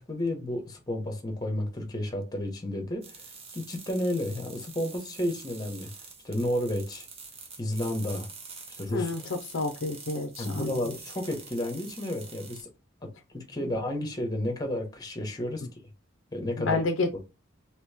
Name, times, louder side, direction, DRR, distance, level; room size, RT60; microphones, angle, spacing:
voice 1, 0.0-3.2 3.5-5.9 6.2-7.1 7.6-8.3 8.8-9.1 10.4-12.7 13.0-15.7 16.3-16.8, left 1 dB, 20° left, 0.9 m, -31 dB
sound 1, 3.0-12.6, right 4 dB, 30° right, 0.7 m, -46 dB
voice 2, 8.9-10.8 16.6-17.1, left 3 dB, 65° left, 0.5 m, -29 dB
3.0 x 2.9 x 3.4 m
head